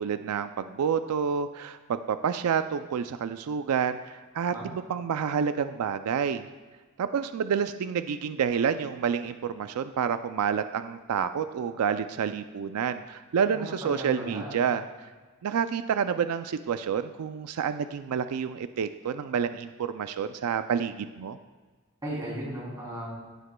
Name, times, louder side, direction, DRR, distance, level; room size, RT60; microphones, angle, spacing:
voice 1, 0.0-6.5 7.0-14.8 15.4-21.4, right 7 dB, 85° right, 10 dB, 0.4 m, -29 dB
voice 2, 13.5-14.5 22.0-23.1, right 1 dB, 15° right, -5 dB, 3.0 m, -36 dB
15.0 x 8.0 x 2.2 m, 1.4 s
head